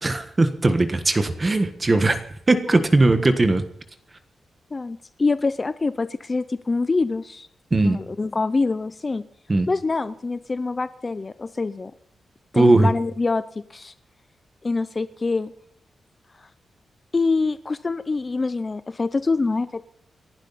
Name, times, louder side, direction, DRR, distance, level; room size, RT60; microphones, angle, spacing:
voice 1, 0.0-3.6 7.7-8.0 9.5-9.7 12.5-12.9, right 2 dB, 20° right, 8 dB, 1.4 m, -19 dB
voice 2, 4.7-7.5 7.8-9.2 9.7-11.9 12.5-13.9 14.6-15.5 16.4-16.5 17.1-19.8, left 3 dB, 25° left, 13 dB, 0.5 m, -25 dB
29.0 x 11.5 x 4.1 m, 0.67 s
wide cardioid pair, 165°, 0 cm